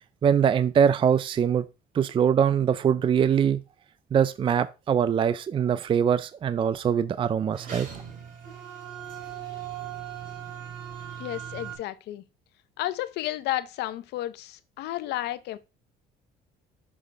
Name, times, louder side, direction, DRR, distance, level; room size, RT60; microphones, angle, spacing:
voice 1, 0.2-1.7 1.9-3.6 4.1-7.9, right 8 dB, 30° right, 0.4 m, -23 dB
sound 1, 7.5-11.8, right 9 dB, 55° right, 2.7 m, -39 dB
voice 2, 11.2-12.2 12.8-15.6, left 15 dB, 80° left, 0.6 m, -32 dB
6.2 x 3.3 x 5.0 m
cardioid pair, 110°, 17 cm